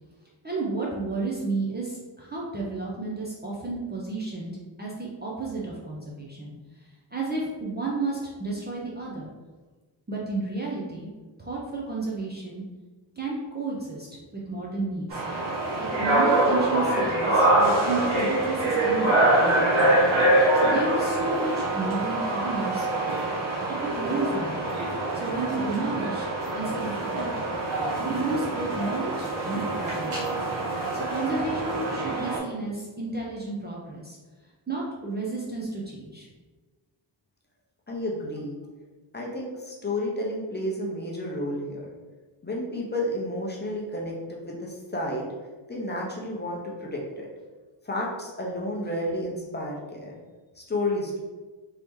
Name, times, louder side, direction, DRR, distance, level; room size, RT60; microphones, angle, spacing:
voice 1, 0.4-6.5 7.1-9.3 10.1-11.1 11.4-12.6 13.2-14.1 14.5-15.2 15.8-20.1 20.5-22.9 23.8-24.7 25.1-27.3 28.0-30.3 30.9-34.2 34.7-36.3, right 3 dB, 20° right, -4 dB, 0.5 m, -32 dB
sound 1, 15.1-32.4, right 1 dB, 80° right, 1.3 m, -25 dB
voice 2, 37.9-38.6 39.1-41.9 42.4-45.2 45.7-47.3 47.8-50.2 50.6-51.2, left 1 dB, 20° left, -3 dB, 0.7 m, -31 dB
3.1 x 2.9 x 3.5 m, 1.3 s
wide cardioid pair, 120°, 47 cm